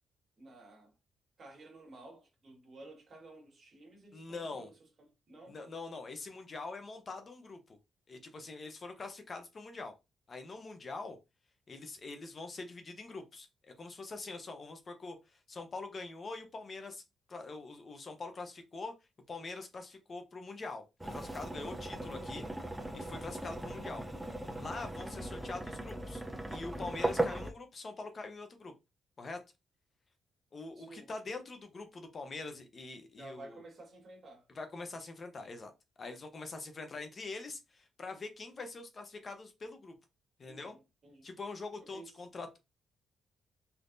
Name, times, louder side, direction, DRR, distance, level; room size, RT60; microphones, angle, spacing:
voice 1, 0.4-0.9 1.4-5.6 30.7-31.1 33.2-34.5 40.4-41.3 41.9-42.1, right 2 dB, 45° right, 1.5 m, -53 dB
voice 2, 4.1-4.7 5.5-7.8 8.1-9.9 10.3-11.2 11.7-13.5 13.8-17.0 17.3-18.9 19.3-20.8 21.1-22.5 22.9-26.2 26.5-28.7 29.2-29.4 30.5-33.6 34.5-35.7 36.0-39.9 40.4-40.8 41.2-42.6, left 3 dB, 40° left, 0.7 m, -44 dB
sound 1, 21.0-27.5, right 1 dB, 10° right, 0.5 m, -38 dB
3.5 x 2.7 x 2.5 m
cardioid pair, 105°, 0 cm